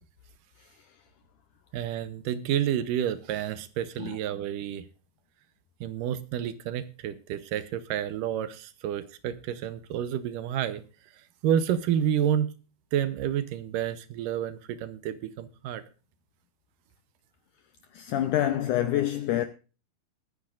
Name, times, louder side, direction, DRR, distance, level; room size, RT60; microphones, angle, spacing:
voice 1, 1.7-4.8 5.8-10.8 11.4-12.5 12.9-15.8, right 10 dB, 75° right, 2.2 m, -29 dB
voice 2, 17.9-19.5, left 12 dB, 85° left, 1.8 m, -26 dB
21.5 x 9.6 x 2.5 m
omnidirectional pair, 4.4 m